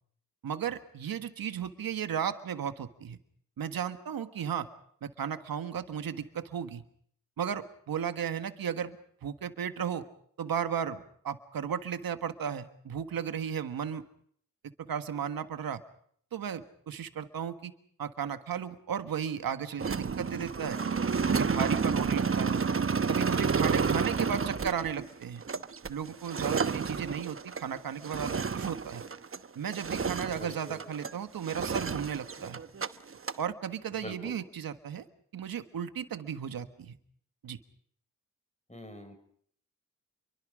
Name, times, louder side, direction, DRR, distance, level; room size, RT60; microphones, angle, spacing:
voice 1, 0.4-3.2 3.6-4.7 5.0-6.8 7.4-9.0 9.2-10.1 10.4-14.0 14.8-15.8 16.3-17.7 18.0-20.8 21.3-22.6 23.1-25.4 25.9-29.0 29.5-32.6 33.4-35.1 35.3-37.0 37.4-37.6, right 8 dB, 85° right, 9 dB, 1.6 m, -35 dB
sound 1, 19.8-29.5 29.7-31.1 31.5-32.9 33.1-33.4, right 5 dB, 40° right, 1.0 m, -30 dB
voice 2, 30.2-30.8 34.0-34.4 38.7-39.1, equal, 20° left, 7 dB, 5.9 m, -44 dB
29.5 x 23.5 x 5.1 m, 0.63 s
cardioid pair, 55°, 34 cm